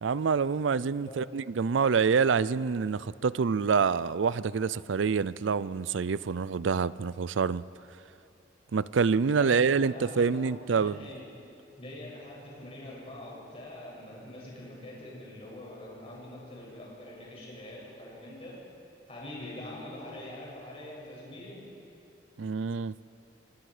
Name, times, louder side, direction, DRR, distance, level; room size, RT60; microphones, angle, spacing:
voice 1, 0.0-7.6 8.7-11.0 22.4-22.9, right 5 dB, 80° right, 0.5 m, -26 dB
voice 2, 9.2-11.2 11.8-18.6 19.1-21.6, left 1 dB, 30° left, 7.6 m, -44 dB
26.5 x 24.5 x 5.0 m
head